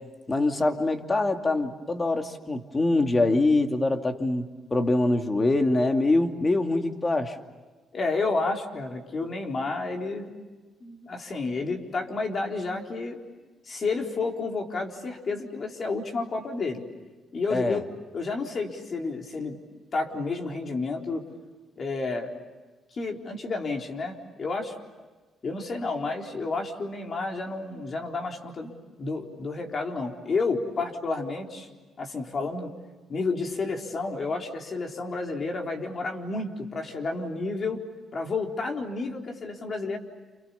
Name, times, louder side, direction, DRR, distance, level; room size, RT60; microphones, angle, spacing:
voice 1, 0.3-4.5 4.7-7.4 17.5-17.8, left 2 dB, 25° left, 5 dB, 2.6 m, -24 dB
voice 2, 7.9-10.3 10.8-13.2 13.6-16.8 17.3-17.8 18.1-19.6 19.9-21.2 21.8-22.3 22.9-24.7 25.4-28.7 29.0-31.7 32.0-32.7 33.1-37.8 38.1-40.0, left 3 dB, 45° left, 2 dB, 4.0 m, -30 dB
29.0 x 28.5 x 7.1 m, 1.3 s
cardioid pair, 90°, 0 cm